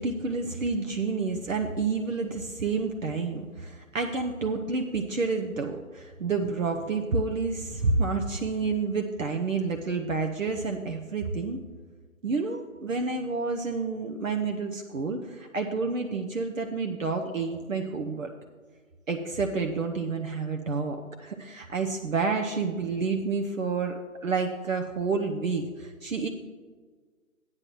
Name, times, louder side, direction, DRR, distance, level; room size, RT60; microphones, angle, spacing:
voice 1, 0.0-11.6 12.2-18.3 19.1-24.0 24.2-26.3, right 4 dB, 65° right, 3 dB, 0.9 m, -29 dB
13.0 x 9.7 x 3.0 m, 1.5 s
figure-of-eight pair, 150°, 42 cm